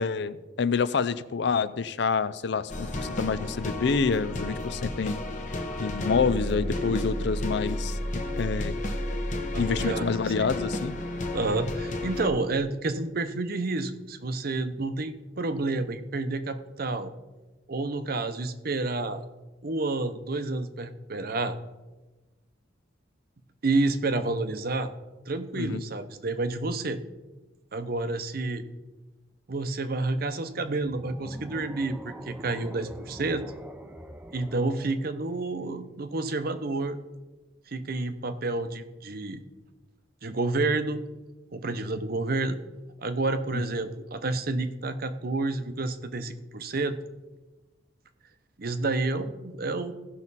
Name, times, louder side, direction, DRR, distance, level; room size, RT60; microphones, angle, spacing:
voice 1, 0.0-5.2 5.8-8.7 9.6-11.0 25.6-25.8 43.5-43.6, left 5 dB, 65° left, 15 dB, 0.5 m, -27 dB
sound 1, 2.7-12.3, left 1 dB, 40° left, 1.0 m, -32 dB
voice 2, 9.5-10.5 11.3-17.1 17.7-19.2 19.6-21.6 23.6-24.9 25.3-27.0 27.7-28.7 29.5-33.4 34.3-37.0 37.7-39.4 40.2-41.0 41.5-42.6 43.0-47.0 48.6-49.9, right 2 dB, 50° right, 10 dB, 0.7 m, -29 dB
sound 2, 30.8-36.0, right 1 dB, 10° right, 0.5 m, -45 dB
16.0 x 5.9 x 4.1 m, 1.1 s
head